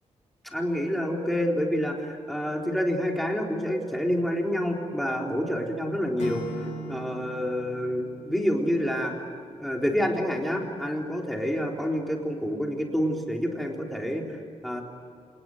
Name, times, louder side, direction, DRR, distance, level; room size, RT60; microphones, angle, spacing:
voice 1, 0.4-9.2 9.6-14.3 14.6-14.8, equal, ahead, 0 dB, 3.8 m, -28 dB
Acoustic guitar / Strum, 6.2-9.3, left 1 dB, 70° left, 3.5 m, -39 dB
28.5 x 20.0 x 9.2 m, 2.3 s
wide cardioid pair, 170°, 12 cm